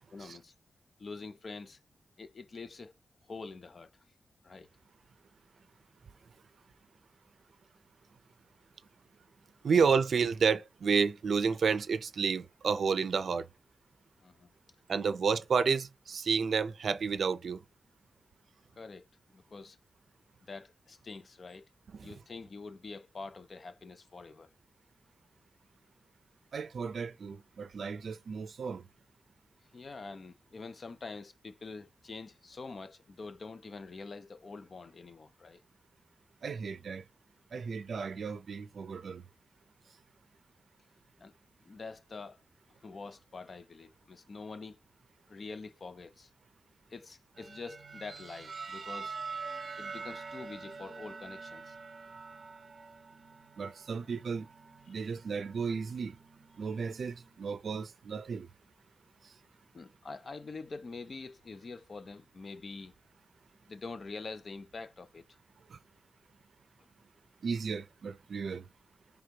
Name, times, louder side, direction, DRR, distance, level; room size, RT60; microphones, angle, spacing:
voice 1, 0.1-0.5 1.0-1.8 2.2-2.9 3.2-4.0 4.4-4.7 14.2-14.5 18.8-19.1 19.3-19.8 20.4-21.7 22.0-24.5 29.7-35.6 41.2-41.3 41.6-42.4 42.8-44.8 45.3-46.3 46.9-49.2 49.8-51.8 54.9-55.0 59.7-62.9 63.7-65.2 66.8-66.9, left 4 dB, 45° left, 0.4 m, -45 dB
voice 2, 9.6-13.4 14.9-17.6 22.0-22.1 26.5-28.8 36.4-37.0 37.5-39.2 53.6-54.5 54.9-56.1 56.6-58.5 67.4-68.6, right 5 dB, 70° right, 0.4 m, -31 dB
sound 1, 47.4-57.3, right 4 dB, 50° right, 0.8 m, -45 dB
5.2 x 3.4 x 2.8 m
wide cardioid pair, 150°, 0 cm